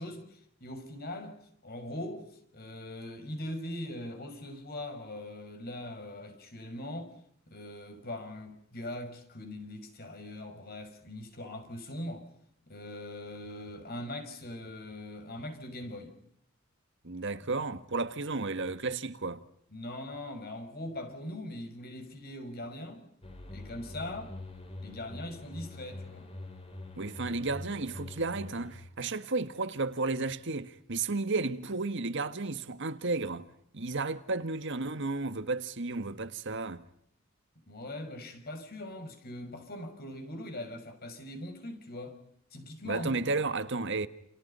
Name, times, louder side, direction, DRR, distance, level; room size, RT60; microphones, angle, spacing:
voice 1, 0.0-1.4 1.6-7.1 7.5-12.3 12.7-16.1 19.7-23.0 23.5-24.3 24.8-26.3 37.7-42.2 42.5-43.3, left 1 dB, 50° left, 6.2 m, -41 dB
voice 2, 17.0-19.4 27.0-33.5 33.7-36.8 42.8-44.1, right 3 dB, 60° right, 1.6 m, -33 dB
sound 1, 23.2-28.7, left 2 dB, 30° left, 7.0 m, -44 dB
29.5 x 29.5 x 5.6 m
head